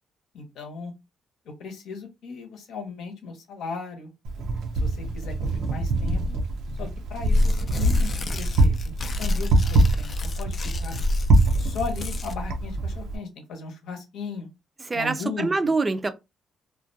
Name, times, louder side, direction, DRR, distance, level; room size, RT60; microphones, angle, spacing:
voice 1, 0.3-0.9 1.5-4.1 4.7-5.3 5.7-6.2 6.8-11.0 11.6-14.5 14.9-15.7, left 4 dB, 75° left, 0.8 m, -36 dB
Wind, 4.2-13.2, right 1 dB, 80° right, 0.5 m, -23 dB
Tearing, 7.2-12.4, left 3 dB, 45° left, 0.3 m, -37 dB
voice 2, 14.9-16.1, right 3 dB, 25° right, 0.4 m, -25 dB
2.3 x 2.2 x 2.6 m
cardioid pair, 90°, 0 cm